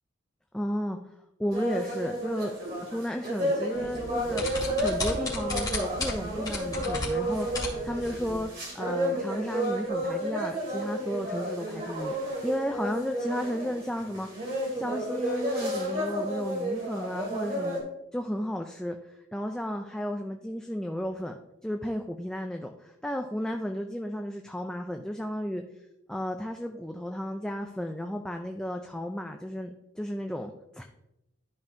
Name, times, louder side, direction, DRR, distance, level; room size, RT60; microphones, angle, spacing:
voice 1, 0.5-1.0 1.4-2.5 2.8-4.4 4.8-8.5 8.7-12.2 12.4-14.3 14.7-17.8 18.1-21.4 21.6-25.6 26.1-30.8, equal, 5° left, 4 dB, 0.3 m, -33 dB
sound 1, 1.5-17.8, right 1 dB, 50° right, 2.7 m, -32 dB
sound 2, 3.7-8.4, left 2 dB, 20° left, 2.3 m, -35 dB
12.5 x 5.3 x 2.6 m, 0.89 s
head